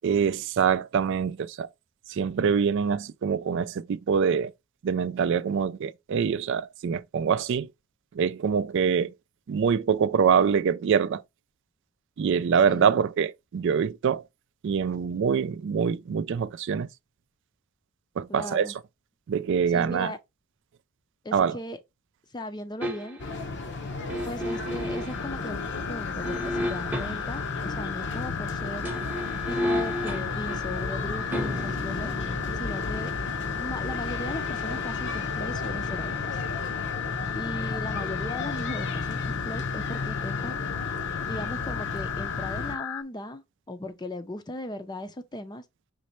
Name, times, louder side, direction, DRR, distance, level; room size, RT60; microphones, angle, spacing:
voice 1, 0.0-1.7 2.1-4.5 4.8-7.7 8.1-9.1 9.5-11.2 12.2-14.2 14.6-16.9 18.2-18.8 19.3-20.1 21.3-21.6, right 6 dB, 60° right, 0.3 m, -25 dB
voice 2, 18.3-18.7 19.7-20.2 21.2-21.8 22.3-23.2 24.2-25.6 25.9-28.9 29.5-32.1 32.5-33.1 33.6-36.4 37.3-40.6 41.3-45.6, left 1 dB, 20° left, 0.5 m, -37 dB
sound 1, 22.8-23.4 24.1-25.3 26.2-27.4 28.7-39.6 39.9-40.1, left 1 dB, 10° right, 0.8 m, -36 dB
sound 2, 23.2-42.8, left 3 dB, 55° left, 0.8 m, -34 dB
sound 3, 25.1-43.0, left 11 dB, 75° left, 0.3 m, -35 dB
5.2 x 3.2 x 3.0 m
head